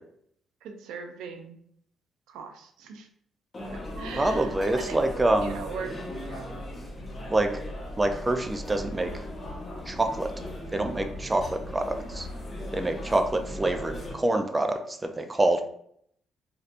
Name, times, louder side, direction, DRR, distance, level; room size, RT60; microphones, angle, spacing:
voice 1, 0.6-1.6 2.3-3.1 3.7-5.0 5.4-5.9 6.3-6.5, right 6 dB, 90° right, 6 dB, 0.4 m, -40 dB
sound 1, 3.5-14.1, left 1 dB, 30° left, 0.7 m, -38 dB
voice 2, 4.2-5.6 7.3-7.5 8.0-9.1 9.9-10.3 10.7-11.4 11.7-12.3 12.7-15.6, right 2 dB, 20° right, 6 dB, 0.4 m, -26 dB
3.2 x 2.8 x 2.4 m, 0.69 s
cardioid pair, 90°, 0 cm